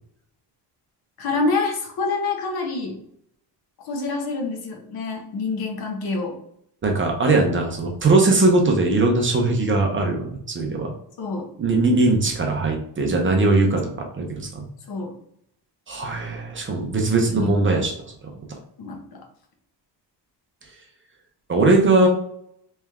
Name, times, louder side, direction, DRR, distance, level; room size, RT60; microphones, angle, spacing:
voice 1, 1.2-3.0 3.9-6.4 11.2-11.5 14.9-15.2 17.1-17.9 18.8-19.2, left 3 dB, 60° left, 2 dB, 1.0 m, -27 dB
voice 2, 6.8-10.9 11.6-14.6 15.9-17.9 21.5-22.1, right 2 dB, 30° right, 1 dB, 0.6 m, -20 dB
3.4 x 3.1 x 3.5 m, 0.70 s
cardioid pair, 165°, 43 cm